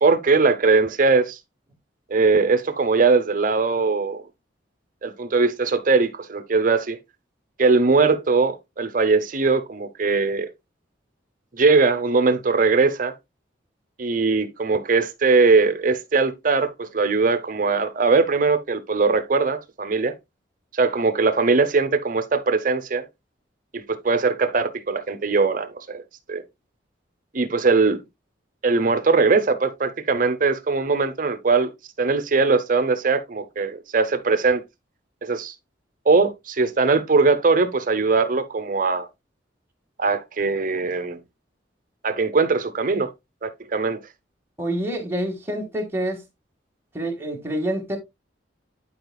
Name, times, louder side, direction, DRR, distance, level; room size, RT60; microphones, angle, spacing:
voice 1, 0.0-1.4 2.1-4.2 5.0-7.0 7.6-10.5 11.5-13.1 14.0-20.1 20.7-23.1 23.7-26.0 26.3-26.4 27.3-28.0 28.6-31.7 32.0-34.6 35.2-35.5 36.1-39.1 40.0-41.2 42.0-43.1 43.4-44.0, right 4 dB, 45° right, 0.8 m, -20 dB
voice 2, 44.6-46.2 46.9-48.0, right 1 dB, 15° right, 1.9 m, -27 dB
11.5 x 5.0 x 2.3 m
head